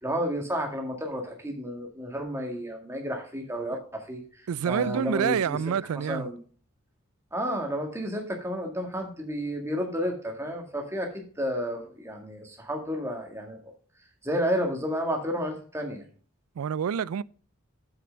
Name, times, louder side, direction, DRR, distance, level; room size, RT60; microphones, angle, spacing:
voice 1, 0.0-6.4 7.3-13.7 14.2-16.0, equal, 10° right, 1.8 m, -31 dB
voice 2, 4.5-6.3 16.6-17.2, right 8 dB, 80° right, 0.3 m, -27 dB
7.7 x 6.7 x 5.1 m
head